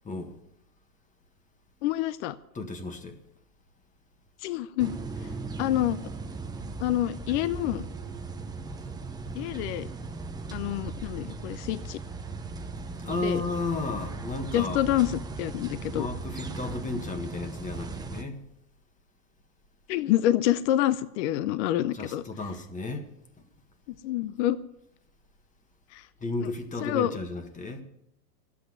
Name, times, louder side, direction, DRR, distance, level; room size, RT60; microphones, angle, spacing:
voice 1, 1.8-2.4 4.4-4.9 5.6-6.0 6.8-7.9 9.4-9.9 10.5-12.0 13.2-13.4 14.5-16.1 19.9-22.2 24.0-24.6 25.9-26.0 26.4-26.5 26.8-27.1, left 13 dB, 45° left, 15 dB, 0.7 m, -27 dB
voice 2, 2.5-3.2 13.0-14.9 15.9-18.4 21.9-23.1 26.2-27.8, left 3 dB, 15° left, 7 dB, 1.6 m, -33 dB
sound 1, 4.8-18.2, right 3 dB, 10° right, 0.8 m, -38 dB
12.0 x 8.6 x 9.3 m, 0.83 s
hypercardioid pair, 120°, 48 cm